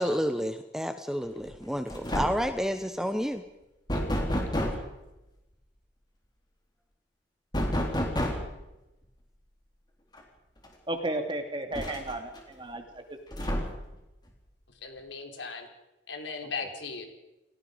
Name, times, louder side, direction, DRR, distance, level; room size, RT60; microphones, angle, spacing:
voice 1, 0.0-3.4, equal, 5° right, 8 dB, 1.0 m, -30 dB
sound 1, 1.4-1.6 1.9-2.6 3.9-4.9 7.5-8.6 10.1-10.2 10.6-10.7 11.7-12.4 13.3-14.0, equal, 20° left, 3.9 m, -30 dB
voice 2, 3.9-4.5 14.8-15.7 16.1-17.1, left 4 dB, 75° left, 4 dB, 4.0 m, -38 dB
voice 3, 10.9-13.2 16.6-16.7, right 1 dB, 25° right, 5 dB, 2.6 m, -34 dB
29.5 x 18.0 x 5.2 m, 0.98 s
head